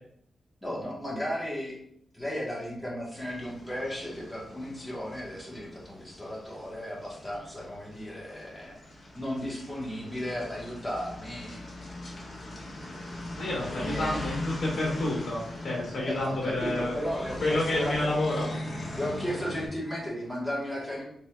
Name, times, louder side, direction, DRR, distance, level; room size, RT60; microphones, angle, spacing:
voice 1, 0.6-1.8 2.1-8.8 9.1-12.0 13.6-14.2 16.0-18.1 18.9-21.0, equal, 5° left, -6 dB, 1.1 m, -35 dB
sound 1, 3.2-19.7, left 1 dB, 35° left, 1.1 m, -40 dB
voice 2, 13.4-16.9 17.4-18.5, left 2 dB, 60° left, -3 dB, 1.4 m, -29 dB
4.3 x 3.2 x 2.2 m, 0.71 s
wide cardioid pair, 160°, 0 cm